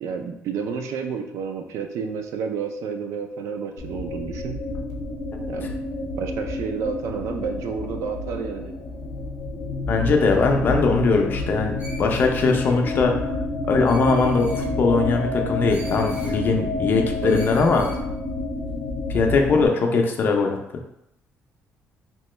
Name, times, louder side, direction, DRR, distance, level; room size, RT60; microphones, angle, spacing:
voice 1, 0.0-4.6 5.5-5.7 6.0-8.7 17.2-17.4, right 6 dB, 75° right, 5 dB, 0.4 m, -30 dB
sound 1, 3.8-19.7, left 2 dB, 85° left, 0.6 m, -29 dB
voice 2, 9.9-11.7 12.0-13.1 13.7-17.9 19.1-20.6, left 4 dB, 40° left, 3 dB, 0.4 m, -20 dB
Screech, 11.8-12.8 13.9-14.7 15.7-16.4 17.2-18.0, right 1 dB, 35° right, 0.7 m, -44 dB
2.9 x 2.2 x 3.1 m, 0.79 s
cardioid pair, 160°, 5 cm